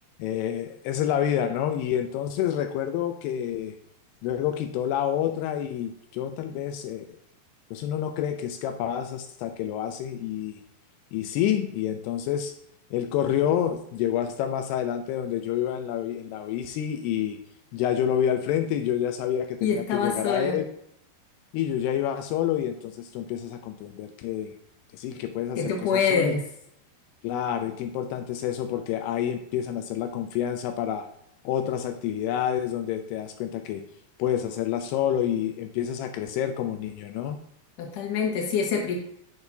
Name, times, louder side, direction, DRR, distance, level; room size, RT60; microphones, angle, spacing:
voice 1, 0.2-3.8 4.2-7.1 7.7-10.6 11.1-12.5 12.9-17.4 17.7-20.6 21.5-24.5 24.9-26.4 27.2-31.1 31.4-33.8 34.2-37.4, left 10 dB, 85° left, 7 dB, 2.4 m, -28 dB
voice 2, 19.6-20.6 25.6-26.4 37.8-39.0, left 5 dB, 60° left, 0 dB, 2.3 m, -25 dB
10.5 x 6.0 x 2.7 m, 0.73 s
omnidirectional pair, 5.1 m